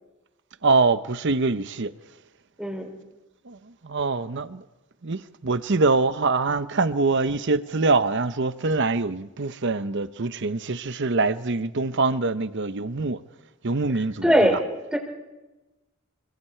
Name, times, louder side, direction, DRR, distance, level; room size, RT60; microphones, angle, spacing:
voice 1, 0.6-1.9 3.5-3.6 3.8-4.6 5.0-13.2 13.6-14.3, right 3 dB, 55° right, 0.8 m, -24 dB
voice 2, 2.6-2.9 13.9-14.6 14.9-15.0, equal, 5° right, 3.9 m, -21 dB
27.5 x 25.0 x 4.5 m
head